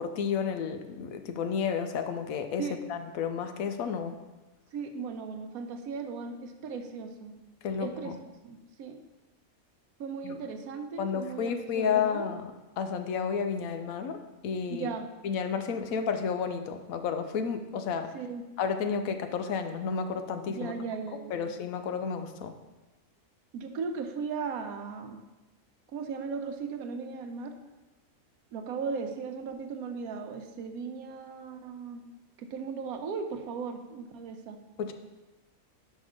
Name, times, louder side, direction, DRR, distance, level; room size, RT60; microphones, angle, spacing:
voice 1, 0.0-4.2 7.6-8.2 10.2-10.4 11.0-14.9 15.2-18.1 18.6-20.7 21.1-22.5 34.8-34.9, left 6 dB, 75° left, 8 dB, 1.0 m, -31 dB
voice 2, 4.7-7.3 7.8-8.2 8.4-9.0 10.0-12.3 14.7-15.1 18.1-18.4 20.5-21.4 23.5-25.2 25.9-27.6 28.5-32.0 32.4-34.6, right 5 dB, 85° right, 7 dB, 1.1 m, -37 dB
5.6 x 5.1 x 5.0 m, 1.1 s
omnidirectional pair, 1.5 m